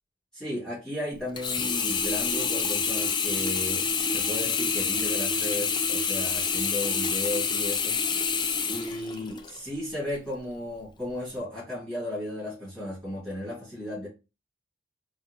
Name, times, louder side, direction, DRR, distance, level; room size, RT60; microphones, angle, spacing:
voice 1, 0.3-8.0 8.7-14.1, left 1 dB, 5° left, 1.8 m, -35 dB
Sink (filling or washing), 1.4-9.6 10.1-10.2, left 5 dB, 25° left, 0.4 m, -27 dB
4.1 x 2.3 x 2.7 m
head